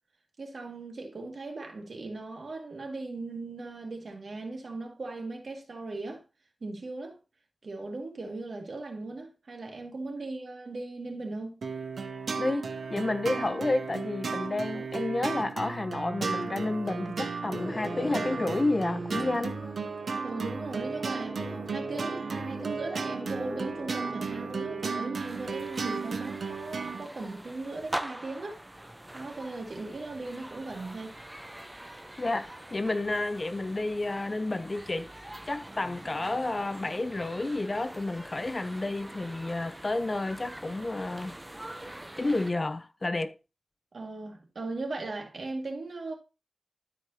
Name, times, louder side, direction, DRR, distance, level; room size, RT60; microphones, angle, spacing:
voice 1, 0.4-6.2 6.6-7.2 7.6-11.5 20.2-28.6 29.1-31.2 43.9-46.1, right 3 dB, 70° right, 2.1 m, -38 dB
sound 1, 11.6-27.0, right 5 dB, 90° right, 0.8 m, -34 dB
voice 2, 12.4-19.6 32.2-35.1 35.5-41.3 42.2-43.4, left 2 dB, 40° left, 0.7 m, -30 dB
sound 2, 17.5-25.0, left 1 dB, 15° left, 1.2 m, -42 dB
sound 3, 25.1-42.5, right 1 dB, 15° right, 0.7 m, -44 dB
12.5 x 4.9 x 2.8 m
wide cardioid pair, 80°, 0 cm